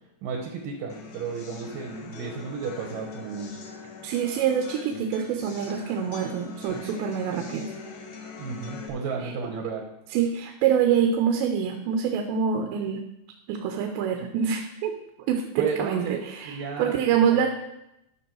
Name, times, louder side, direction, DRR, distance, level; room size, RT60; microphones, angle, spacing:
voice 1, 0.2-3.5 8.4-9.9 15.6-17.0 17.3-17.4, right 5 dB, 70° right, 2 dB, 2.3 m, -33 dB
sound 1, 0.9-8.9, left 4 dB, 65° left, 2.0 m, -42 dB
voice 2, 4.0-7.7 9.2-9.3 10.1-13.0 13.5-14.9 15.3-17.5, right 8 dB, 85° right, 4 dB, 3.1 m, -25 dB
12.5 x 6.0 x 4.6 m, 0.85 s
omnidirectional pair, 5.0 m